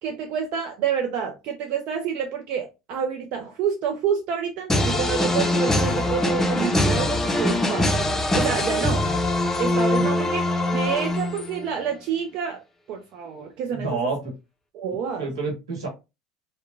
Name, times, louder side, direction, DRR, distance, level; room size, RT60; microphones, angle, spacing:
voice 1, 0.0-7.9 8.3-9.1 9.6-10.4 10.7-12.6 12.9-14.1 14.7-15.3, right 7 dB, 55° right, 0.4 m, -28 dB
sound 1, 4.7-11.6, left 1 dB, 15° left, 0.5 m, -23 dB
voice 2, 13.7-14.2 15.2-15.9, right 3 dB, 80° right, 1.0 m, -28 dB
2.9 x 2.1 x 2.4 m
hypercardioid pair, 75°, 3 cm